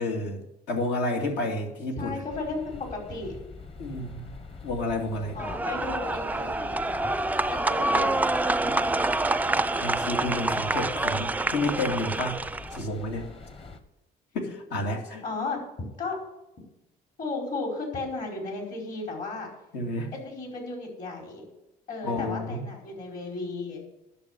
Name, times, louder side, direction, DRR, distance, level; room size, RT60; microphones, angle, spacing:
voice 1, 0.0-2.2 3.8-4.3 4.6-5.4 9.8-12.4 12.7-13.3 14.3-15.2 19.7-20.1 22.0-22.6, left 2 dB, 80° left, 3 dB, 2.4 m, -30 dB
voice 2, 2.0-3.3 5.3-7.0 7.5-9.0 15.2-15.6 16.0-16.2 17.2-19.5 20.1-21.5 21.9-23.8, left 3 dB, 55° left, 1 dB, 5.1 m, -34 dB
sound 1, 2.3-13.8, left 3 dB, 35° left, 1.3 m, -44 dB
sound 2, 5.4-12.8, right 2 dB, 10° right, 0.3 m, -27 dB
11.0 x 6.9 x 8.3 m, 0.88 s
cardioid pair, 110°, 17 cm